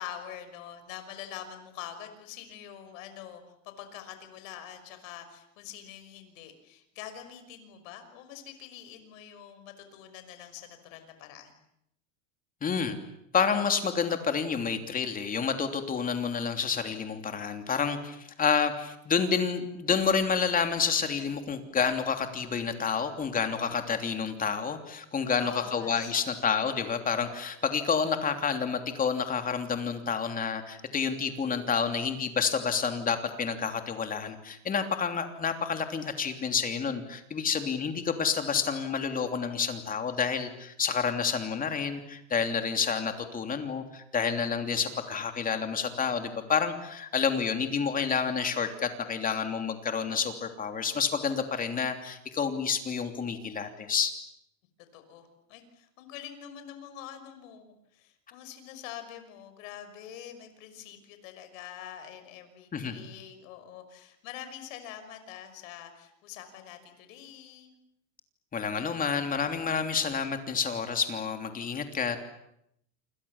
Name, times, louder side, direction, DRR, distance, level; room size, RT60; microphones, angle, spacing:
voice 1, 0.0-11.5 25.2-26.1 54.9-67.7, left 10 dB, 70° left, 9 dB, 5.9 m, -45 dB
voice 2, 12.6-13.0 13.3-54.1 62.7-63.0 68.5-72.2, left 6 dB, 20° left, 6 dB, 3.1 m, -29 dB
28.5 x 27.0 x 7.3 m, 0.78 s
supercardioid pair, 145°, 41 cm